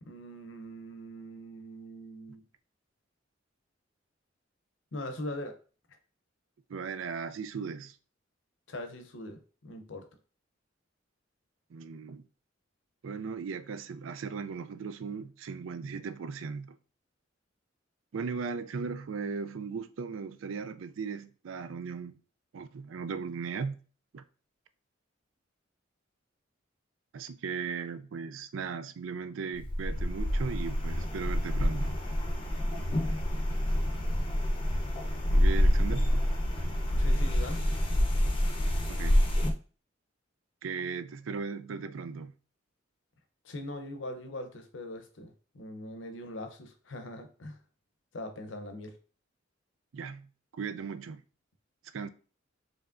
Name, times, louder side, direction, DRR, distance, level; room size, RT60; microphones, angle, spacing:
voice 1, 0.0-2.4 4.9-5.6 8.7-10.1 37.0-37.6 43.4-47.6 48.1-48.9, left 1 dB, 70° left, 0.7 m, -41 dB
voice 2, 6.7-8.0 11.7-12.2 13.0-16.8 18.1-22.2 22.5-23.8 24.1-24.2 27.1-32.0 35.3-36.3 38.9-39.2 40.6-42.3 49.9-51.2 51.9-52.1, right 5 dB, 85° right, 0.4 m, -37 dB
sound 1, 29.6-39.5, equal, 25° left, 0.6 m, -27 dB
4.6 x 3.1 x 2.5 m
head